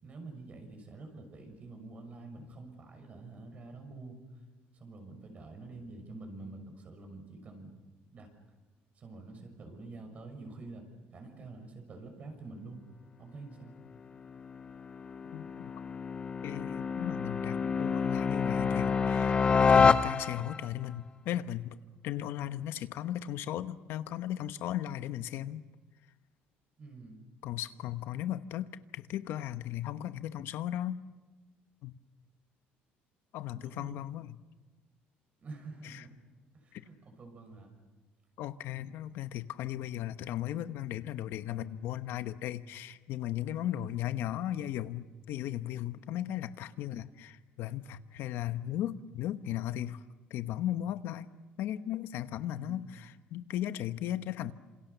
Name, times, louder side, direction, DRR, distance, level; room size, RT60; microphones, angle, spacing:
voice 1, 0.0-4.2 4.7-7.7 8.1-8.3 8.9-12.8 13.2-13.7 26.8-27.3 33.6-34.0 35.4-36.1 36.5-37.7 43.6-44.0 52.4-53.0, right 3 dB, 35° right, 5 dB, 6.3 m, -47 dB
sound 1, 14.2-20.7, left 5 dB, 25° left, 0.8 m, -28 dB
voice 2, 15.2-15.7 16.4-21.8 22.0-25.7 27.4-31.0 31.8-32.0 33.3-34.4 35.8-36.0 36.7-36.8 38.4-50.0 50.3-51.3 51.6-54.5, left 12 dB, 65° left, 11 dB, 1.0 m, -36 dB
28.0 x 27.5 x 6.9 m, 1.2 s
cardioid pair, 140°, 4 cm